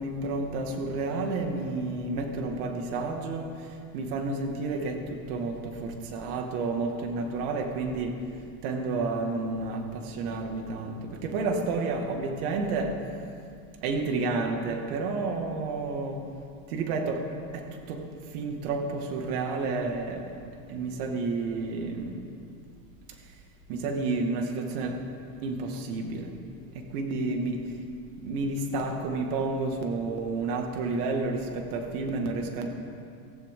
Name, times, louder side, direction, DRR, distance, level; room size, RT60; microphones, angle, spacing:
voice 1, 0.0-3.7 3.9-8.2 8.6-13.0 13.8-16.2 16.7-17.2 17.5-20.3 20.7-22.2 23.7-25.0 25.4-26.3 26.9-27.6 28.2-32.7, right 3 dB, 65° right, 3 dB, 2.2 m, -30 dB
16.0 x 15.5 x 3.8 m, 2.4 s
supercardioid pair, 135°, 49 cm